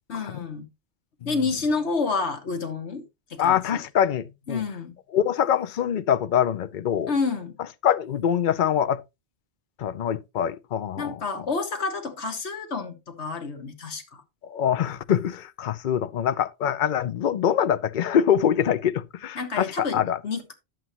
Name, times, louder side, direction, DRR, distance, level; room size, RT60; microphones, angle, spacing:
voice 1, 0.1-0.7 1.2-3.0 3.3-3.8 4.5-4.9 7.1-7.6 11.0-14.2 19.3-20.5, left 4 dB, 75° left, 1.7 m, -29 dB
voice 2, 3.4-4.6 5.1-7.1 7.8-9.0 9.8-11.2 14.4-20.2, left 9 dB, 50° left, 0.7 m, -24 dB
11.0 x 7.7 x 2.9 m
omnidirectional pair, 1.2 m